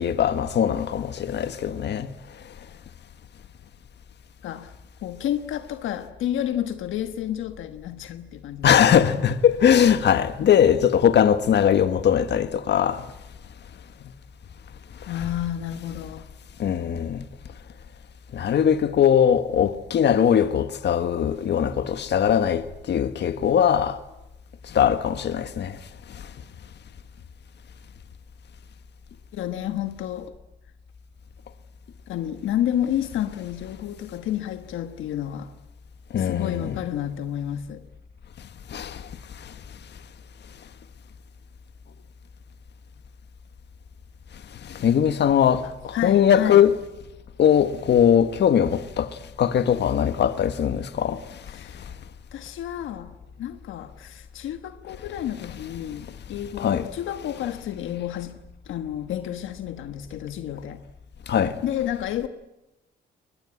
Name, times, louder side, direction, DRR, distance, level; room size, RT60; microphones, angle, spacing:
voice 1, 0.0-2.1 8.6-13.0 16.6-17.2 18.3-24.0 24.7-25.7 36.1-36.8 38.7-39.0 44.7-46.7 47.4-49.1 49.4-51.2 56.6-56.8 61.3-61.5, left 9 dB, 60° left, 1.5 m, -20 dB
voice 2, 4.4-4.7 5.0-9.3 15.1-16.3 29.3-30.3 32.1-35.5 36.2-37.8 45.6-46.7 51.5-51.9 52.3-60.8 61.6-62.3, left 11 dB, 80° left, 1.3 m, -30 dB
23.0 x 21.0 x 9.8 m
cardioid pair, 90°, 20 cm